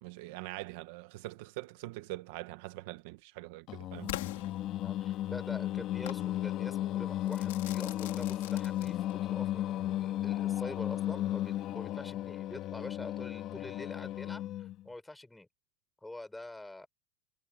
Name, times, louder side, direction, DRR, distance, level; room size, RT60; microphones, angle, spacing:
voice 1, 0.0-4.1, right 19 dB, 60° right, 1.1 m, -43 dB
Singing, 3.7-14.8, left 13 dB, 35° left, 2.5 m, -34 dB
Crackle / Fireworks, 4.1-5.2 6.1-6.3 7.3-9.3, left 16 dB, 90° left, 3.2 m, -43 dB
voice 2, 4.8-15.5 16.0-16.9, left 2 dB, 5° left, 6.3 m, -46 dB
supercardioid pair, 160°, 0 cm